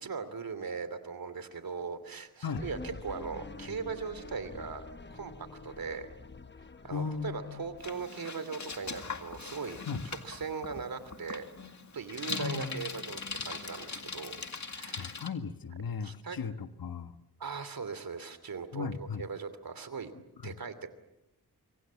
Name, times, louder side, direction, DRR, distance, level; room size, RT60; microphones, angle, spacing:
voice 1, 0.0-4.8 5.1-5.3 5.6-6.1 6.8-9.8 10.0-11.5 11.9-14.4 14.6-15.1 16.0-16.4 17.4-20.1 20.4-20.9, right 5 dB, 65° right, 12 dB, 2.9 m, -39 dB
sound 1, 2.5-8.1, left 3 dB, 30° left, 1.1 m, -47 dB
voice 2, 6.9-7.6 9.8-10.0 12.3-12.8 15.0-17.2 18.7-19.2 20.4-20.6, left 5 dB, 65° left, 8 dB, 1.6 m, -37 dB
Bicycle, 7.8-15.3, left 5 dB, 50° left, 2.2 m, -41 dB
26.5 x 24.0 x 7.4 m, 0.92 s
cardioid pair, 70°, 37 cm